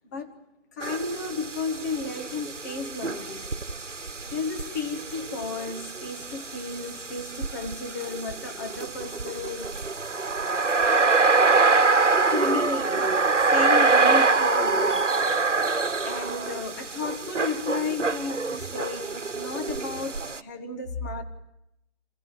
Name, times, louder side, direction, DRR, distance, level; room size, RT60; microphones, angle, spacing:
voice 1, 0.7-3.5 4.3-9.7 12.2-13.2 13.5-15.1 16.0-21.2, left 4 dB, 15° left, 4 dB, 1.2 m, -33 dB
sound 1, 0.8-20.4, right 3 dB, 85° right, 1.2 m, -25 dB
28.0 x 16.0 x 9.3 m, 0.86 s
figure-of-eight pair, 155°, 36 cm